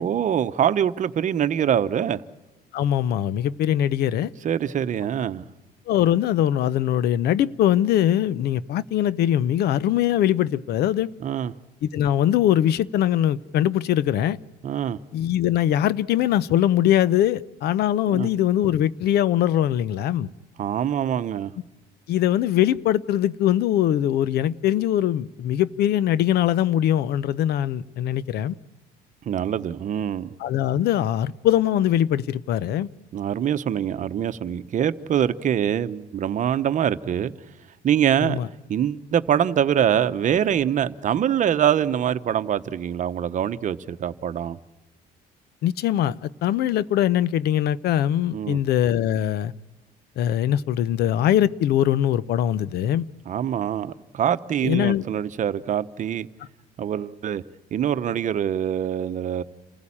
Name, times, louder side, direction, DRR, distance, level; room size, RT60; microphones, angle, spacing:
voice 1, 0.0-2.2 4.4-5.5 11.2-11.5 14.6-15.0 18.1-18.3 20.6-21.5 29.3-30.3 33.1-37.3 37.8-38.4 38.7-44.6 48.3-48.6 53.3-56.3 56.8-57.4 57.7-59.4, right 9 dB, 50° right, 0.9 m, -24 dB
voice 2, 2.7-4.3 5.9-11.1 11.8-14.4 15.1-20.3 22.1-28.5 30.4-32.9 38.2-38.5 45.6-49.5 50.2-53.1 54.6-55.0, left 11 dB, 70° left, 0.7 m, -22 dB
28.5 x 15.5 x 8.7 m
cardioid pair, 110°, 17 cm